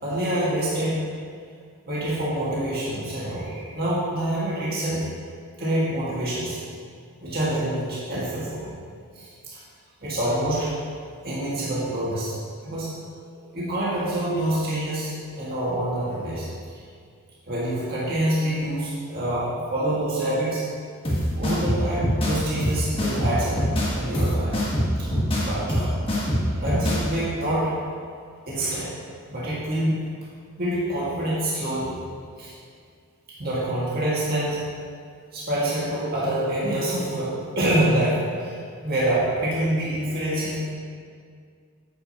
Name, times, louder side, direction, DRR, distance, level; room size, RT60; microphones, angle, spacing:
voice 1, 0.0-1.1 1.9-5.1 5.6-6.6 7.2-8.7 9.1-9.6 10.0-10.8 11.2-12.4 12.6-12.9 13.5-16.5 16.7-16.8 17.5-20.6 21.4-24.6 25.0-25.1 25.4-25.9 26.5-27.7 28.5-28.9 29.3-29.9 30.6-32.0 32.4-32.5 33.4-34.6 35.3-40.7, right 1 dB, 45° right, -9 dB, 2.0 m, -26 dB
sound 1, 21.0-27.0, equal, 25° left, 1.4 m, -24 dB
8.7 x 8.6 x 3.0 m, 2.1 s
head